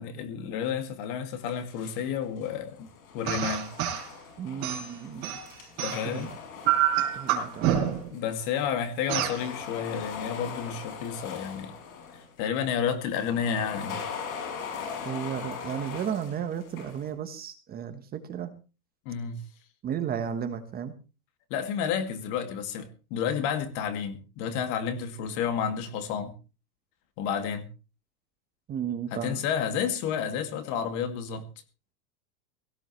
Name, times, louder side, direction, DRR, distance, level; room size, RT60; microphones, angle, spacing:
voice 1, 0.0-2.9 3.1-3.7 5.8-6.3 8.1-11.7 12.1-14.1 19.1-19.4 21.5-26.3 27.2-27.7 29.1-31.5, left 7 dB, 40° left, 2.4 m, -31 dB
sound 1, 1.5-2.0 2.4-8.6 8.9-12.4 13.1-17.1, left 6 dB, 60° left, 6.4 m, -41 dB
sound 2, 3.3-4.1 4.6-6.2 6.7-8.1 9.1-9.4, right 11 dB, 40° right, 4.4 m, -27 dB
voice 2, 4.4-5.4 6.0-6.4 7.1-7.8 15.0-18.5 19.8-20.9 28.7-29.4, right 8 dB, 20° right, 1.3 m, -34 dB
17.5 x 16.0 x 3.2 m
supercardioid pair, 145°, 46 cm